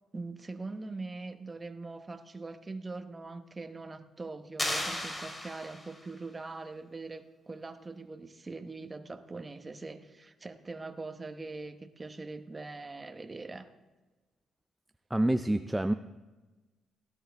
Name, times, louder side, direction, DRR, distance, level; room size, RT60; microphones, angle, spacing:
voice 1, 0.1-13.7, right 3 dB, 25° right, 8 dB, 1.0 m, -42 dB
sound 1, 4.6-6.1, left 1 dB, 20° left, 2.4 m, -35 dB
voice 2, 15.1-15.9, right 1 dB, 10° right, 8 dB, 0.4 m, -27 dB
17.0 x 11.5 x 3.5 m, 1.2 s
cardioid pair, 90°, 0 cm